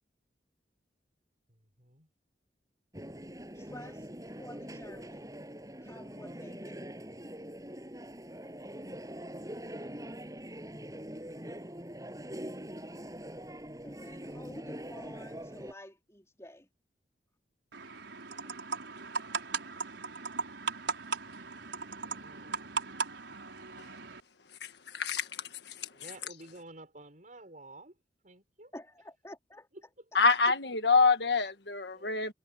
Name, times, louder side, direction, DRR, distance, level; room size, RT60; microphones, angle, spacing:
voice 1, 1.5-2.1 22.0-22.7 25.9-28.0 28.2-28.7 29.7-30.1 31.9-32.2, right 2 dB, 45° right, 6.5 m, -52 dB
sound 1, 2.9-15.7, equal, 20° right, 7.9 m, -43 dB
voice 2, 3.5-4.1 4.4-5.3 5.8-6.9 13.8-16.7 18.4-18.5 28.7-29.7, left 1 dB, 15° left, 3.9 m, -50 dB
sound 2, 17.7-24.2, right 5 dB, 85° right, 4.8 m, -38 dB
voice 3, 24.9-25.3 25.7-25.8 30.2-32.3, left 4 dB, 70° left, 1.6 m, -26 dB
head